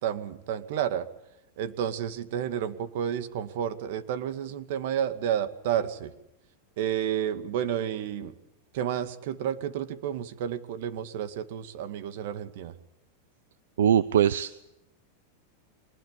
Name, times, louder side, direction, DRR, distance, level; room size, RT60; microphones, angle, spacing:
voice 1, 0.0-1.1 1.6-6.1 6.8-8.3 8.7-12.8, right 9 dB, 65° right, 11 dB, 2.2 m, -31 dB
voice 2, 13.8-14.6, right 9 dB, 85° right, 17 dB, 0.8 m, -22 dB
24.0 x 20.0 x 8.4 m, 0.87 s
hypercardioid pair, 125°, 0 cm